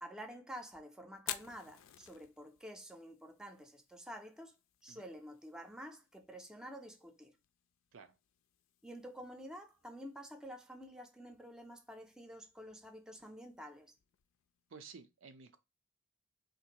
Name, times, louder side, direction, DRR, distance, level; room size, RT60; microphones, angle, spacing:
voice 1, 0.0-4.5 4.8-7.3 8.8-13.9, equal, 5° right, 0.4 m, -49 dB
Fire, 1.1-15.0, left 11 dB, 85° left, 0.4 m, -54 dB
voice 2, 14.7-15.6, right 5 dB, 70° right, 0.5 m, -53 dB
3.5 x 2.5 x 2.8 m
head